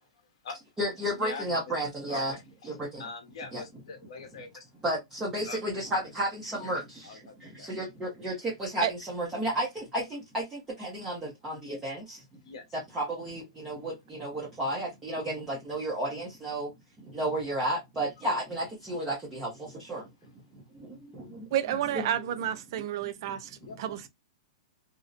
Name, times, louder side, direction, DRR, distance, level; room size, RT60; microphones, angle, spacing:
voice 1, 0.8-2.3 2.6-3.0 3.5-3.6 4.8-12.2 12.7-16.7 17.0-20.0 20.5-21.5 21.9-22.2 23.3-23.7, right 1 dB, 10° right, 0.7 m, -33 dB
voice 2, 2.1-4.7 5.4-5.8 7.0-7.7 12.4-12.6 23.6-23.8, left 4 dB, 75° left, 0.8 m, -43 dB
voice 3, 21.5-24.1, right 11 dB, 50° right, 0.3 m, -31 dB
2.6 x 2.0 x 2.4 m
supercardioid pair, 160°, 3 cm